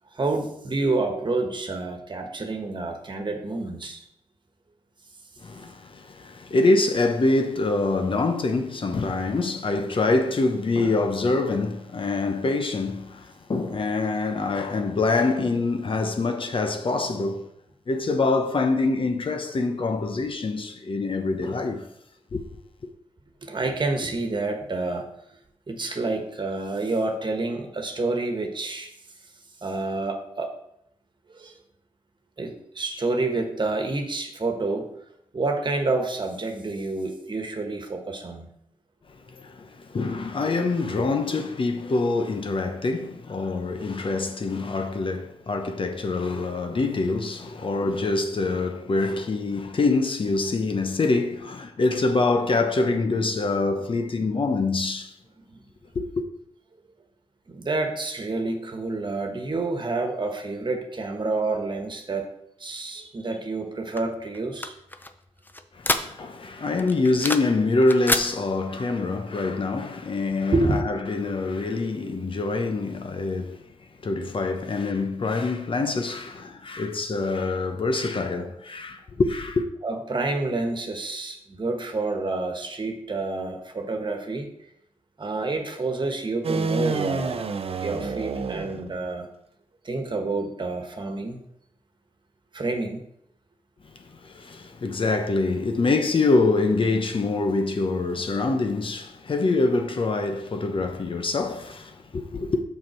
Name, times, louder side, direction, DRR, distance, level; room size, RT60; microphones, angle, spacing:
voice 1, 0.1-4.0 23.4-25.1 25.7-28.9 29.6-30.5 31.3-31.5 32.4-34.9 35.3-38.5 55.5-55.6 57.5-62.3 62.6-64.7 70.5-70.9 79.8-84.5 85.2-87.4 87.8-89.3 89.8-91.4 92.5-93.0, right 3 dB, 45° right, 1.3 m, -28 dB
voice 2, 5.4-17.5 17.9-21.9 22.3-22.4 39.3-55.1 55.9-56.2 65.7-73.6 74.0-79.6 93.9-102.6, left 3 dB, 55° left, 0.9 m, -25 dB
sound 1, 64.0-66.5 66.8-67.6 67.8-68.3, left 1 dB, 15° left, 0.7 m, -28 dB
sound 2, 86.4-89.1, right 4 dB, 60° right, 0.6 m, -28 dB
6.4 x 5.8 x 4.4 m
cardioid pair, 55°, 11 cm